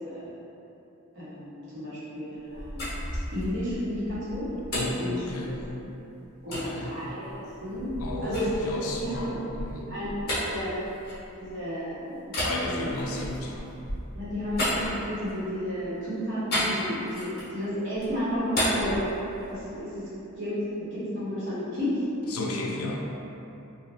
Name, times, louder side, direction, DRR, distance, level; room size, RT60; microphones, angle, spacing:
voice 1, 1.1-4.5 5.0-5.1 5.4-5.6 6.4-7.9 8.2-8.5 8.9-9.4 9.9-10.1 10.4-10.8 11.4-12.3 12.6-13.0 14.1-19.1 19.5-20.1 20.3-22.0, equal, 55° right, -11 dB, 1.1 m, -32 dB
sound 1, 2.4-5.9 6.5-6.7 7.3-11.7 12.3-15.5 16.5-17.6 17.9-19.7, equal, 45° left, 1.0 m, -33 dB
voice 2, 4.7-5.5 6.5-6.9 8.0-9.9 12.4-13.7 22.3-23.0, left 2 dB, 85° left, -1 dB, 0.4 m, -33 dB
3.3 x 2.3 x 2.6 m, 2.9 s
head